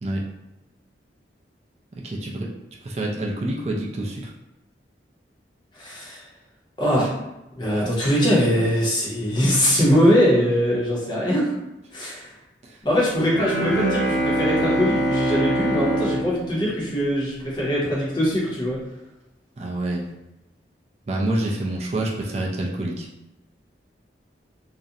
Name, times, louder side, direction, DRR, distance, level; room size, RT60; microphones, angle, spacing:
voice 1, 2.0-2.5 2.8-4.3 12.6-12.8 19.6-20.1 21.1-23.1, right 1 dB, 35° right, -2 dB, 0.3 m, -27 dB
voice 2, 5.8-6.2 6.8-7.1 7.6-11.5 11.9-12.3 12.8-18.8, equal, 25° left, -5 dB, 0.6 m, -21 dB
Bowed string instrument, 13.3-17.6, right 1 dB, 85° right, 0.8 m, -24 dB
2.4 x 2.0 x 2.7 m, 0.95 s
head